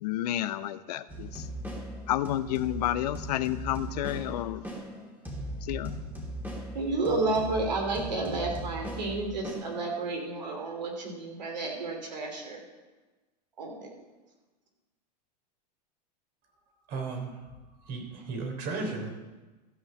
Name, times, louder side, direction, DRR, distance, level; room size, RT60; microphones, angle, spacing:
voice 1, 0.0-1.4 2.1-4.6 5.6-6.0, left 13 dB, 70° left, 15 dB, 0.6 m, -30 dB
sound 1, 1.1-10.2, right 1 dB, 10° right, 2.7 m, -39 dB
voice 2, 6.7-12.6 13.6-13.9, right 3 dB, 85° right, 1 dB, 3.0 m, -31 dB
voice 3, 16.9-17.3 17.9-19.1, right 3 dB, 50° right, 3 dB, 3.3 m, -34 dB
14.5 x 5.6 x 7.2 m, 1.2 s
hypercardioid pair, 100°, 21 cm